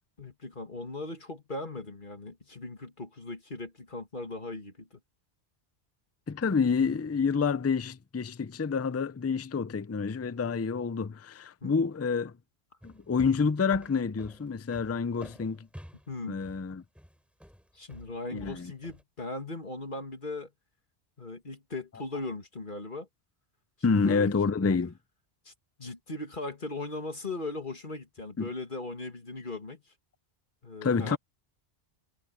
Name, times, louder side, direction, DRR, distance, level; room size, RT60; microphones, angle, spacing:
voice 1, 0.2-4.9 11.6-11.7 16.1-16.4 17.7-20.5 21.2-23.1 23.9-24.3 25.5-25.6 25.8-29.8 30.6-31.2, left 2 dB, 50° left, 2.4 m, -38 dB
voice 2, 6.3-12.3 12.8-15.7 16.2-16.8 18.3-18.7 23.8-24.9 28.4-28.5 30.8-31.2, left 5 dB, 25° left, 0.3 m, -28 dB
sound 1, 12.8-19.0, equal, ahead, 7.4 m, -50 dB
omnidirectional pair, 1.1 m